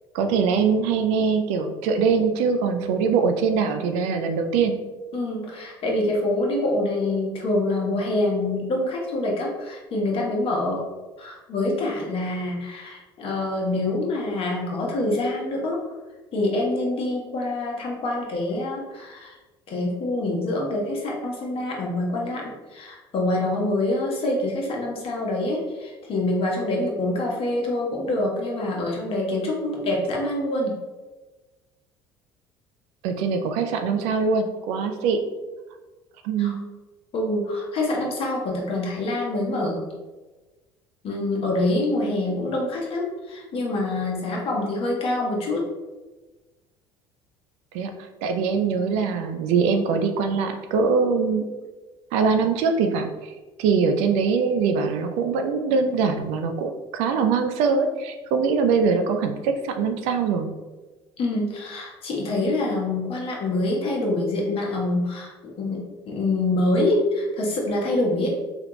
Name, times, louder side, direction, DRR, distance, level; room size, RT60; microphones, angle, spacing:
voice 1, 0.1-4.8 33.0-35.2 36.2-36.6 47.7-47.9 48.2-51.5 52.1-53.3 53.6-60.5, right 5 dB, 65° right, 6 dB, 0.4 m, -22 dB
voice 2, 5.1-10.8 11.2-15.8 16.3-19.4 19.7-30.8 36.4-36.5 37.1-39.8 41.0-45.7 61.2-68.4, left 2 dB, 45° left, -1 dB, 1.0 m, -26 dB
3.4 x 2.4 x 2.9 m, 1.2 s
hypercardioid pair, 60°, 13 cm